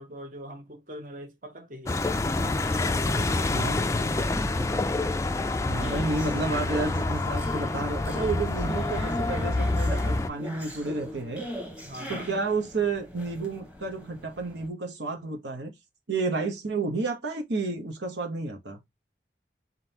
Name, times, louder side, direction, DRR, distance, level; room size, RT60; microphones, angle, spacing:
voice 1, 0.0-2.0 2.4-3.8 11.8-12.3, equal, 45° right, 1.1 m, -42 dB
sound 1, 1.9-10.3, left 2 dB, 15° left, 0.3 m, -27 dB
sound 2, 5.5-14.7, equal, 5° right, 1.0 m, -40 dB
voice 2, 5.7-11.5 12.1-15.7 16.1-18.8, right 3 dB, 80° right, 1.0 m, -31 dB
4.0 x 3.8 x 2.8 m
head